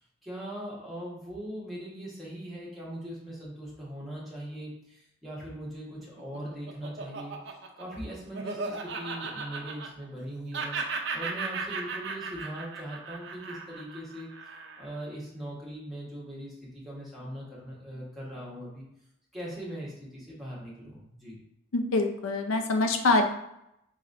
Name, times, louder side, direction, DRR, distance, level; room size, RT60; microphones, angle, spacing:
voice 1, 0.2-7.4 7.8-10.8 11.1-14.3 14.8-18.9 19.3-21.4, right 1 dB, ahead, -7 dB, 1.2 m, -40 dB
Laughter, 6.0-10.3 10.5-15.0, right 4 dB, 60° right, 0.6 m, -36 dB
voice 2, 21.7-23.3, left 2 dB, 85° left, 5 dB, 0.5 m, -25 dB
5.5 x 2.9 x 2.5 m, 0.81 s
head